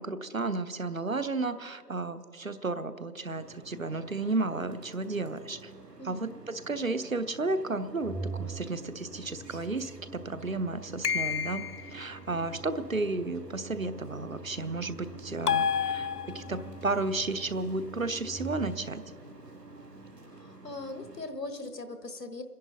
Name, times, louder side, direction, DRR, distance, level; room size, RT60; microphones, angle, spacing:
voice 1, 0.0-5.7 6.0-19.0, right 3 dB, 60° right, 13 dB, 0.7 m, -33 dB
sound 1, 3.3-21.2, right 2 dB, 85° right, 1.9 m, -50 dB
voice 2, 6.0-6.4 20.2-22.4, left 2 dB, 90° left, 8 dB, 1.4 m, -40 dB
Organ, 8.0-19.0, right 3 dB, 5° left, 0.4 m, -45 dB
sound 2, 11.0-12.0 15.5-16.7, left 7 dB, 75° left, 0.5 m, -29 dB
29.5 x 10.5 x 3.9 m, 2.5 s
figure-of-eight pair, 180°, 47 cm